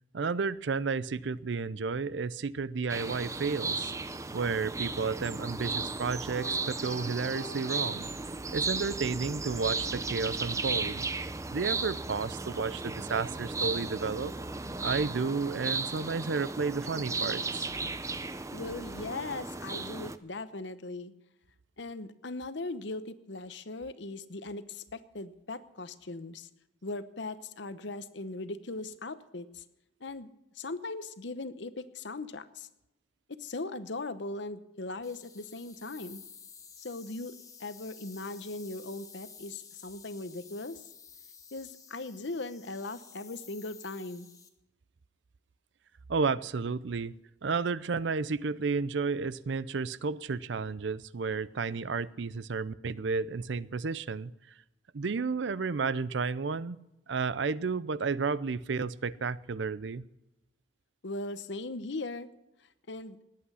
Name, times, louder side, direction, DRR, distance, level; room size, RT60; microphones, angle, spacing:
voice 1, 0.1-3.9 4.3-8.1 8.5-11.1 11.5-14.3 14.8-17.7 46.1-47.1 47.4-54.3 54.9-56.8 57.1-60.0, right 4 dB, 65° right, 18 dB, 0.5 m, -32 dB
sound 1, 2.9-20.2, right 3 dB, 15° right, 0.5 m, -35 dB
Piano, 6.3-8.7, left 2 dB, 45° right, 1.3 m, -48 dB
voice 2, 18.5-21.1 21.8-26.5 26.8-29.6 30.0-30.3 30.5-32.7 33.4-36.2 36.8-40.8 41.5-44.3 61.0-62.3 62.9-63.2, left 2 dB, 65° left, 13 dB, 0.9 m, -39 dB
sound 2, 35.0-44.5, left 6 dB, 15° left, 1.1 m, -52 dB
19.0 x 8.6 x 5.6 m, 0.95 s
head